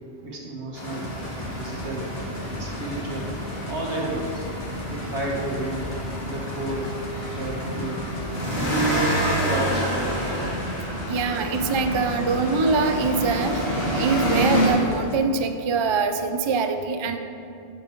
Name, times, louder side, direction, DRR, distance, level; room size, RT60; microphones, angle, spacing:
voice 1, 0.2-1.1 1.5-2.1 2.6-3.3 3.7-4.5 4.9-5.9 6.2-7.0 7.3-8.0 8.5-10.4, right 2 dB, 70° right, -1 dB, 1.7 m, -30 dB
sound 1, 0.7-14.7, equal, 60° left, 2.3 m, -28 dB
sound 2, 0.8-15.2, left 2 dB, 35° left, 0.9 m, -38 dB
voice 2, 11.1-17.2, right 4 dB, 50° right, 7 dB, 0.3 m, -24 dB
10.5 x 7.0 x 4.5 m, 2.6 s
omnidirectional pair, 1.2 m